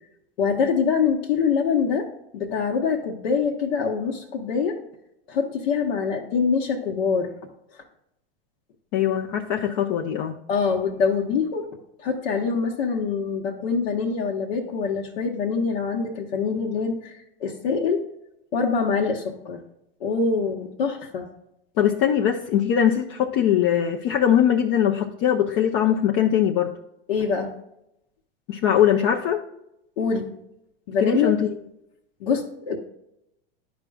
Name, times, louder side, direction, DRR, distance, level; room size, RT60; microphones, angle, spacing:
voice 1, 0.4-2.1 2.3-4.8 5.3-7.3 10.5-11.7 12.0-18.0 18.5-19.6 20.0-21.3 27.1-27.5 30.0-30.3 30.9-31.3 32.2-32.8, left 5 dB, 70° left, -1 dB, 1.1 m, -24 dB
voice 2, 8.9-10.3 21.8-26.8 28.5-29.4 31.0-31.6, left 9 dB, 45° left, 2 dB, 0.6 m, -21 dB
10.5 x 5.0 x 2.3 m, 0.82 s
hypercardioid pair, 105°, 31 cm